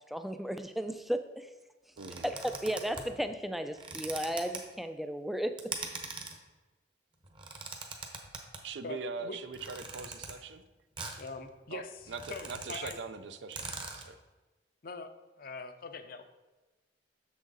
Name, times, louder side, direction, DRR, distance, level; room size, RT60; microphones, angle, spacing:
voice 1, 0.1-1.5 2.2-5.6, equal, ahead, 8 dB, 0.3 m, -34 dB
sound 1, 2.0-3.1 3.7-4.6 5.6-6.4 7.2-8.6 9.5-10.3 11.0-11.3 11.6-11.7 12.0-13.0 13.2-13.3 13.5-14.1, right 4 dB, 25° right, 0.9 m, -41 dB
voice 2, 2.0-2.3 8.6-10.6 11.7-11.8 12.1-14.2, right 4 dB, 70° right, 11 dB, 0.5 m, -41 dB
voice 3, 8.8-9.4 11.2-13.0 14.8-15.1 15.4-16.2, left 4 dB, 50° left, 8 dB, 0.5 m, -43 dB
7.0 x 6.3 x 3.9 m, 1.2 s
head